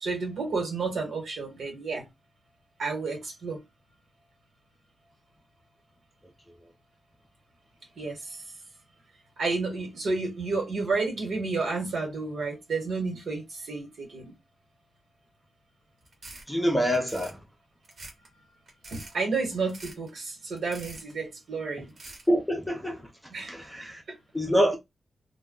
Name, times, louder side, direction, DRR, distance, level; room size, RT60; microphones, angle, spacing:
voice 1, 0.0-2.0 2.8-3.6 8.0-8.4 9.4-14.3 18.9-21.9 23.3-23.5 24.1-24.2, right 4 dB, 80° right, 1.2 m, -31 dB
sound 1, 16.1-16.5 16.9-17.4 17.8-18.3 18.7-19.1 19.7-20.1 20.6-21.1 21.9-22.3, right 2 dB, 50° right, 0.9 m, -45 dB
voice 2, 16.5-17.4 22.3-23.1 23.5-24.0 24.3-24.8, equal, 5° left, 0.6 m, -25 dB
2.2 x 2.1 x 3.7 m
wide cardioid pair, 175°, 0 cm